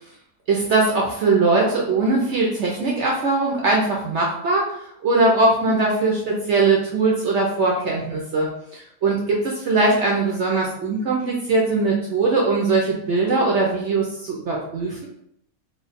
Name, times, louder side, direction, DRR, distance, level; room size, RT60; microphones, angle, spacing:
voice 1, 0.5-4.7 5.0-15.1, right 3 dB, 65° right, -2 dB, 0.7 m, -21 dB
3.1 x 2.0 x 4.0 m, 0.74 s
omnidirectional pair, 1.7 m